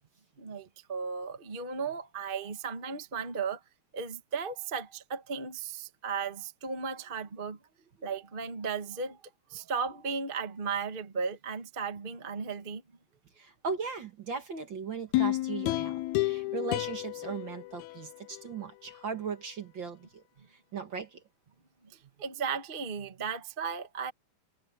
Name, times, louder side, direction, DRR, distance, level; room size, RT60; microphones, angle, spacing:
voice 1, 0.4-3.6 3.9-7.6 8.0-9.2 9.5-12.8 21.8-24.1, right 5 dB, 30° right, 0.9 m, -35 dB
voice 2, 13.4-20.2 20.5-21.2, right 5 dB, 45° right, 1.7 m, -38 dB
sound 1, 15.1-18.4 18.9-19.0, left 17 dB, 80° left, 1.7 m, -31 dB
omnidirectional pair, 3.8 m